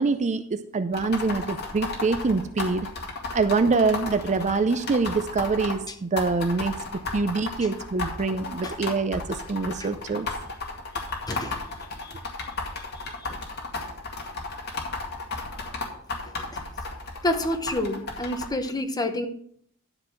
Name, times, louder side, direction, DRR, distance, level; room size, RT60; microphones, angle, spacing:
voice 1, 0.0-2.9 3.3-6.8 7.1-10.3 13.1-13.2, right 4 dB, 30° right, 11 dB, 0.5 m, -25 dB
sound 1, 0.9-5.7 6.2-18.5, left 3 dB, 50° left, 2.1 m, -33 dB
voice 2, 17.2-19.3, left 1 dB, 15° left, 7 dB, 0.9 m, -28 dB
12.0 x 4.0 x 7.6 m, 0.66 s
head